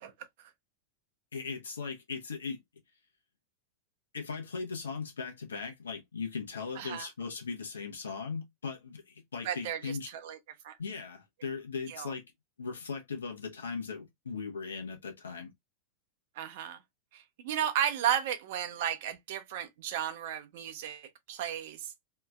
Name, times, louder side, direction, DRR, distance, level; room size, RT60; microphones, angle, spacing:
voice 1, 1.3-2.6 4.1-10.1 10.8-12.2 12.6-15.5, left 5 dB, 70° left, 0.9 m, -38 dB
voice 2, 6.8-7.1 9.4-10.4 10.6-10.7 11.9-12.1 16.4-16.8 17.1-21.9, right 10 dB, 50° right, 0.6 m, -34 dB
2.8 x 2.4 x 2.3 m
figure-of-eight pair, 90°, 0 cm